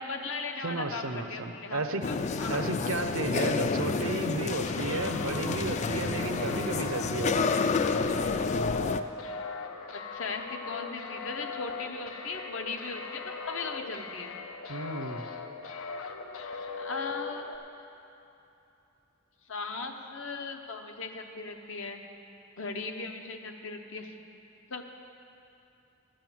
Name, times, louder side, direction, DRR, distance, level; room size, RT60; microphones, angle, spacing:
voice 1, 0.0-1.8 2.1-3.0 9.9-14.3 16.8-17.6 19.5-22.0 22.6-24.2 24.7-24.8, left 3 dB, 70° left, 4 dB, 0.9 m, -38 dB
voice 2, 0.6-2.0 2.5-7.6 14.7-15.2, right 3 dB, 85° right, 7 dB, 0.8 m, -33 dB
sound 1, 2.0-9.0, left 4 dB, 35° left, 0.3 m, -30 dB
sound 2, 4.6-17.6, left 4 dB, 90° left, 0.7 m, -39 dB
11.5 x 7.6 x 7.5 m, 2.9 s
head